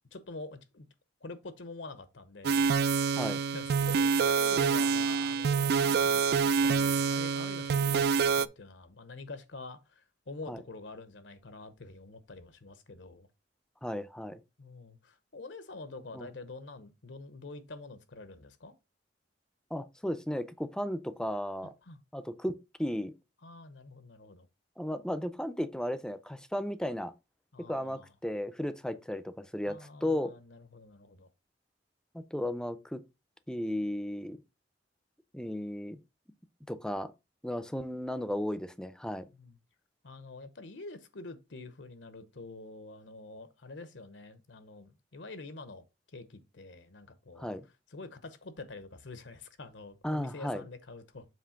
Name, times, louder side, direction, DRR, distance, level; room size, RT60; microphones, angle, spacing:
voice 1, 0.1-0.9 1.2-13.3 14.6-18.7 21.8-22.0 23.4-24.5 27.5-28.1 29.6-31.3 39.4-39.6 40.0-47.6 47.9-51.3, left 3 dB, 80° left, 0.9 m, -46 dB
sound 1, 2.4-8.5, right 5 dB, 60° right, 0.4 m, -27 dB
voice 2, 13.8-14.4 16.1-16.3 19.7-21.7 22.1-23.1 24.8-27.1 27.7-30.3 32.1-33.0 33.5-34.4 35.3-36.0 36.7-37.1 37.4-39.3 47.4-47.6 50.0-50.6, left 1 dB, 5° left, 0.5 m, -35 dB
7.4 x 3.2 x 5.7 m
head